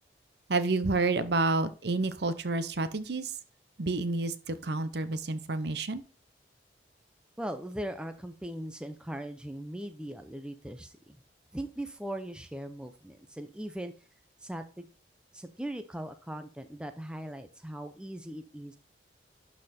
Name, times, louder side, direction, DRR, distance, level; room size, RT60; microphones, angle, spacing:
voice 1, 0.5-3.3 3.8-6.0, right 3 dB, 60° right, 13 dB, 0.7 m, -29 dB
voice 2, 7.4-11.2 11.5-13.9 14.4-14.9 15.3-18.8, right 1 dB, 5° right, 8 dB, 0.6 m, -39 dB
11.5 x 4.3 x 4.2 m, 0.38 s
head